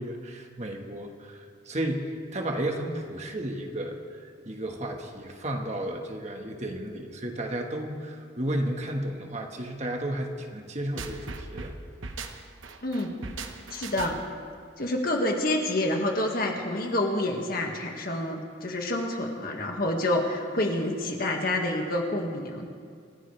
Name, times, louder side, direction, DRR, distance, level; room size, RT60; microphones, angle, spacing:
voice 1, 0.0-11.7, right 1 dB, 35° right, 2 dB, 1.5 m, -33 dB
sound 1, 11.0-14.4, right 3 dB, 85° right, 1.1 m, -39 dB
voice 2, 13.7-14.1 14.8-22.7, left 1 dB, 50° left, 2 dB, 1.8 m, -28 dB
27.5 x 15.0 x 3.3 m, 2.2 s
head